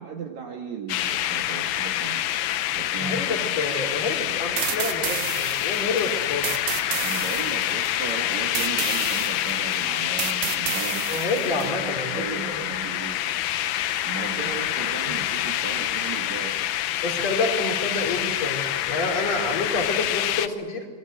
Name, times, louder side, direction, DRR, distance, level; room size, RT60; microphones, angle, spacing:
voice 1, 0.0-2.3 2.7-3.6 6.9-11.3 11.5-13.2 14.0-16.7, right 6 dB, 60° right, -1 dB, 2.9 m, -36 dB
sound 1, 0.9-20.5, left 12 dB, 75° left, 2.4 m, -27 dB
voice 2, 3.0-6.5 11.1-12.7 14.3-14.4 15.0-15.2 17.0-20.9, left 3 dB, 50° left, 1 dB, 5.5 m, -28 dB
sound 2, 4.6-11.7, right 13 dB, 80° right, 2.6 m, -32 dB
27.0 x 20.5 x 8.0 m, 1.3 s
omnidirectional pair, 4.0 m